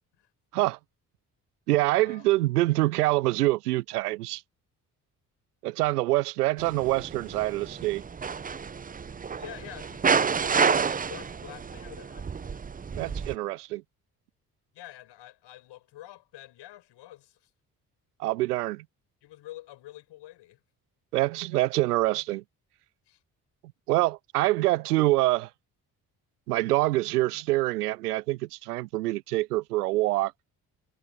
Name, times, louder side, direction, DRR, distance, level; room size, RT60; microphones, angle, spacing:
voice 1, 1.7-4.4 5.6-8.0 12.9-13.8 18.2-18.8 21.1-22.4 23.9-25.5 26.5-30.3, right 18 dB, 75° right, 0.9 m, -25 dB
sound 1, 6.6-13.3, right 6 dB, 20° right, 0.7 m, -29 dB
voice 2, 9.4-12.2 13.3-13.6 14.7-17.4 19.2-20.6 23.1-23.2, left 15 dB, 60° left, 7.2 m, -46 dB
figure-of-eight pair, 40°, 47 cm